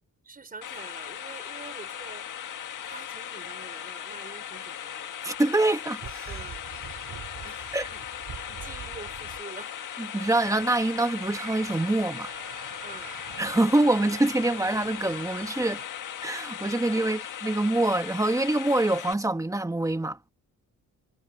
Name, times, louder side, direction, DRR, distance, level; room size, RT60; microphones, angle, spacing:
voice 1, 0.2-2.2 2.8-5.1 6.3-6.6 7.4-7.7 7.9-8.0 8.4-9.8 12.8-13.2 17.0-17.2, right 4 dB, 25° right, 5.2 m, -46 dB
sound 1, 0.6-19.1, left 9 dB, 75° left, 1.7 m, -38 dB
voice 2, 5.2-6.0 7.7-7.9 10.0-12.3 13.4-15.8 16.2-20.2, right 2 dB, 10° right, 1.4 m, -25 dB
sound 2, 6.0-9.4, right 8 dB, 65° right, 2.3 m, -43 dB
sound 3, 10.2-15.9, right 10 dB, 80° right, 6.4 m, -47 dB
wide cardioid pair, 145°, 31 cm